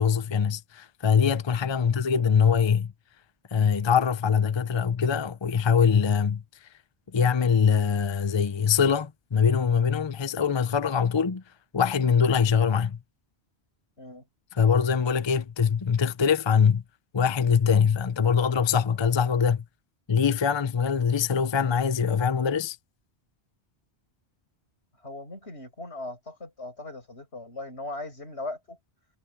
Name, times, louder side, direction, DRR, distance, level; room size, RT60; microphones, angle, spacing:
voice 1, 0.0-2.9 3.5-6.4 7.1-11.4 11.7-13.0 14.5-16.8 17.1-19.6 20.1-22.8, left 6 dB, 30° left, 0.6 m, -23 dB
voice 2, 25.0-28.8, left 2 dB, 85° left, 7.3 m, -39 dB
omnidirectional pair, 1.1 m